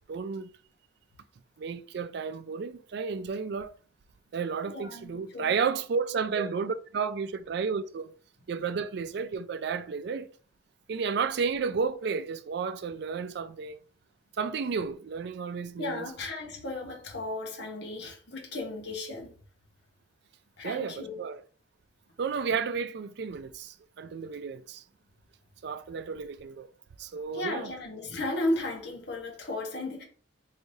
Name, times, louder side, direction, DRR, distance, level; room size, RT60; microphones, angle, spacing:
voice 1, 0.1-0.5 1.6-3.7 4.3-8.1 8.5-10.3 10.9-13.8 14.4-16.1 20.6-21.4 22.2-24.8 25.6-26.7 27.0-27.7, right 5 dB, 55° right, 0.3 m, -32 dB
voice 2, 4.6-5.6 6.3-6.4 15.8-19.3 20.6-21.2 27.3-30.0, left 2 dB, 55° left, 1.0 m, -35 dB
4.6 x 3.1 x 2.7 m
head